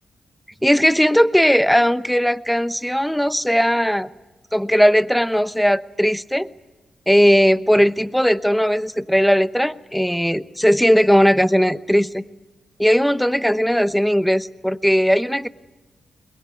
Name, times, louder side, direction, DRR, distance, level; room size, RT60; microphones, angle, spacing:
voice 1, 0.6-4.1 4.5-6.5 7.1-12.2 12.8-15.5, equal, ahead, 14 dB, 0.9 m, -18 dB
22.0 x 22.0 x 9.6 m, 1.1 s
cardioid pair, 70°, 0 cm